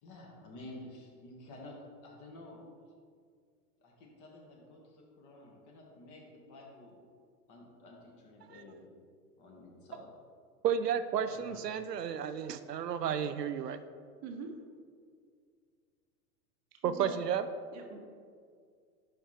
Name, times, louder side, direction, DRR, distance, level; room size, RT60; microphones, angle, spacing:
voice 1, 0.0-2.6 3.8-7.0 7.5-8.9 9.4-10.1 11.3-11.6, left 1 dB, 40° left, -1 dB, 1.9 m, -51 dB
voice 2, 10.6-13.8 16.8-17.5, right 8 dB, 90° right, 11 dB, 0.5 m, -32 dB
voice 3, 14.2-14.5 16.7-17.2 17.7-18.1, right 5 dB, 35° right, 2 dB, 1.0 m, -44 dB
10.5 x 4.3 x 3.3 m, 2.1 s
hypercardioid pair, 100°, 47 cm